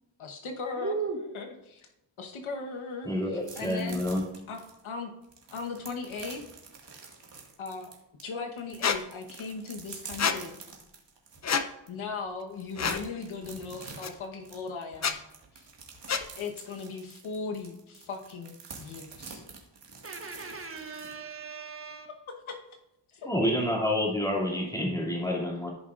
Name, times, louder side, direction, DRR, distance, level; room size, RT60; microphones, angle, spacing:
voice 1, 0.2-0.9 1.3-1.9 2.2-4.0 4.5-5.1 5.5-6.4 7.6-7.9 8.2-10.6 11.9-15.2 15.5-15.7 16.4-19.4 22.5-22.6 23.1-23.3, left 4 dB, 80° left, 3 dB, 1.2 m, -38 dB
voice 2, 0.7-1.2 20.0-22.1, right 5 dB, 25° right, 4 dB, 1.4 m, -36 dB
voice 3, 3.0-4.2 23.2-25.7, left 1 dB, 5° left, -2 dB, 2.6 m, -28 dB
sound 1, 3.4-8.2 8.6-11.4 11.9-12.0 12.3-21.1, right 4 dB, 60° right, 1.9 m, -47 dB
Squeak, 8.8-9.0 10.2-10.4 11.4-11.7 12.8-13.0 14.0-14.1 14.9-15.1 16.1-16.3, left 6 dB, 35° left, 0.6 m, -27 dB
14.5 x 5.5 x 2.5 m, 0.87 s
cardioid pair, 70°, 48 cm